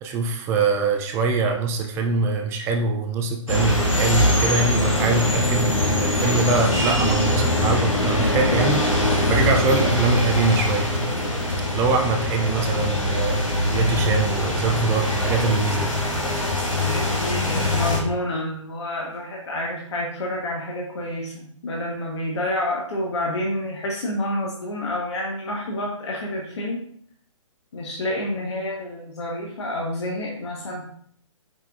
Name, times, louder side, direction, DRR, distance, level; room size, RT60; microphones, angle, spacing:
voice 1, 0.0-8.8 9.3-10.9 11.7-13.4 13.7-15.9, right 4 dB, 15° right, 3 dB, 0.4 m, -23 dB
sound 1, 3.5-18.0, left 1 dB, 90° left, 1.4 m, -22 dB
voice 2, 13.6-14.0 16.8-26.8 27.7-30.8, left 1 dB, 60° left, -2 dB, 1.1 m, -29 dB
5.0 x 4.5 x 2.4 m, 0.63 s
figure-of-eight pair, 130°, 17 cm